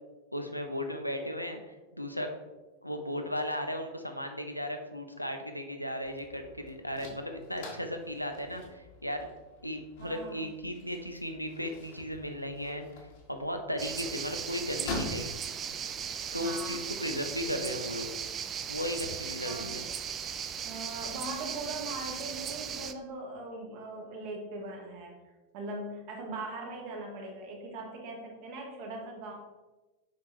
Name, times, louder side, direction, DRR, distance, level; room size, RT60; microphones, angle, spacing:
voice 1, 0.3-2.3 2.8-9.3 9.6-12.8 13.3-15.3 16.3-18.1 18.7-19.9, left 1 dB, 90° left, 5 dB, 0.6 m, -36 dB
sound 1, 6.0-18.3, left 2 dB, 50° left, 1.5 m, -46 dB
voice 2, 10.0-10.5 16.3-16.9 19.4-19.8 20.6-25.2 25.5-29.3, right 2 dB, 45° right, 1 dB, 1.5 m, -40 dB
sound 2, 13.8-22.9, right 8 dB, 25° right, 0.4 m, -37 dB
6.6 x 5.0 x 3.3 m, 1.2 s
figure-of-eight pair, 90°, 0 cm